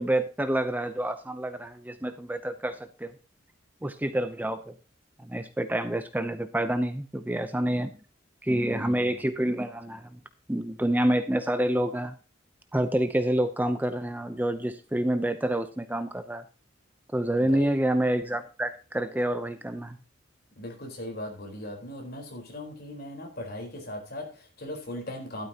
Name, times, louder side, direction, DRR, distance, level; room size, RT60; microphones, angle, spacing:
voice 1, 0.0-3.1 3.8-4.7 5.2-7.9 8.4-10.2 10.5-12.1 12.7-16.4 17.1-20.0, right 1 dB, 10° right, 9 dB, 0.6 m, -28 dB
voice 2, 8.7-9.2 17.4-17.8 20.6-25.5, left 1 dB, 55° left, 2 dB, 4.0 m, -39 dB
12.5 x 12.0 x 2.9 m, 0.33 s
head